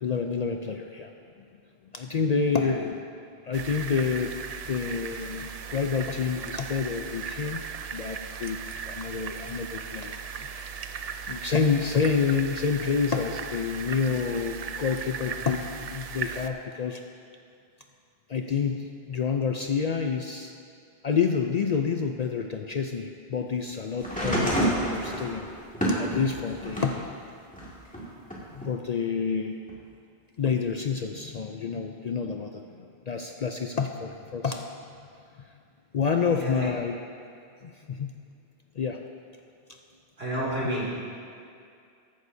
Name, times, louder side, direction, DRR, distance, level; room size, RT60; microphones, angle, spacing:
voice 1, 0.0-1.1 1.9-3.0 3.4-4.3 4.7-7.6 7.9-10.7 11.3-17.0 18.3-20.5 21.0-25.5 25.9-27.1 28.5-29.6 30.4-34.7 35.4-35.5 35.9-37.0 37.6-38.1 38.8-39.0, left 5 dB, 55° left, 4 dB, 0.5 m, -28 dB
sound 1, 3.5-16.5, right 6 dB, 55° right, 0.4 m, -37 dB
sound 2, 24.0-27.0 27.5-28.7 29.7-29.8, right 1 dB, 5° left, 2.0 m, -28 dB
voice 2, 36.3-36.7 40.2-41.0, right 1 dB, 75° right, -7 dB, 3.0 m, -30 dB
14.5 x 11.5 x 2.7 m, 2.4 s
omnidirectional pair, 1.1 m